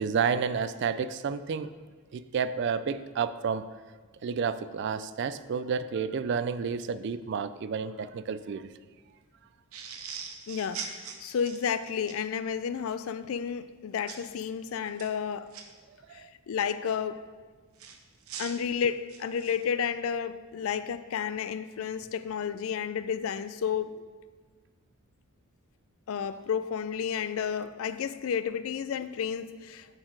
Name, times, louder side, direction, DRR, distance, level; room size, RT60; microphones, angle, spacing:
voice 1, 0.0-1.7 2.1-3.7 4.2-8.7 16.1-16.3, right 6 dB, 50° right, 0.3 m, -30 dB
sound 1, 9.7-12.2 14.1-14.3 14.8-15.6 17.8-19.6, right 6 dB, 75° right, 0.8 m, -41 dB
voice 2, 10.5-15.5 16.1-17.3 18.4-24.0 26.1-29.9, left 7 dB, 65° left, 0.3 m, -31 dB
9.7 x 4.4 x 4.6 m
head